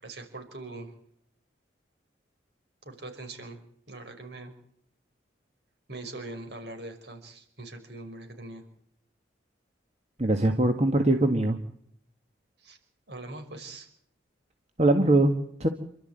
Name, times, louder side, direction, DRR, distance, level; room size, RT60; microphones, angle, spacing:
voice 1, 0.0-0.9 2.8-3.6 3.9-4.5 5.9-8.6 12.6-12.8 13.1-13.9, right 2 dB, 60° right, 5 dB, 5.6 m, -42 dB
voice 2, 10.2-11.6 14.8-15.3 15.6-15.7, right 2 dB, 35° right, 5 dB, 1.7 m, -22 dB
28.0 x 13.0 x 9.1 m, 0.69 s
head